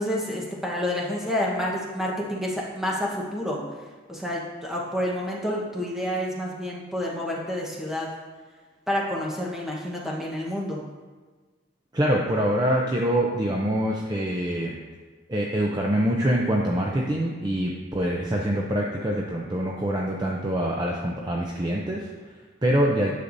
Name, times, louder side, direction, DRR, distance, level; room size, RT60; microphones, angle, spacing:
voice 1, 0.0-3.6 4.1-8.1 8.9-10.8, left 1 dB, ahead, -3 dB, 1.0 m, -29 dB
voice 2, 11.9-14.8 15.3-23.1, right 1 dB, 20° right, -1 dB, 0.5 m, -25 dB
9.8 x 6.7 x 2.6 m, 1.4 s
head